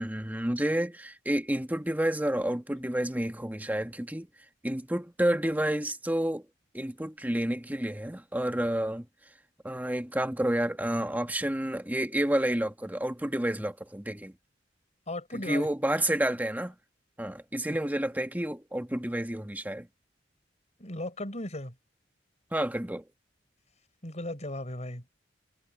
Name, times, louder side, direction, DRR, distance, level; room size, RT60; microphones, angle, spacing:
voice 1, 0.0-4.3 4.6-6.4 6.7-9.1 9.6-14.3 15.3-16.8 17.2-19.9 22.5-23.0, right 1 dB, 10° right, 1.6 m, -30 dB
voice 2, 15.1-15.7 17.7-17.8 20.8-21.7 24.0-25.0, left 1 dB, 40° left, 7.1 m, -36 dB
head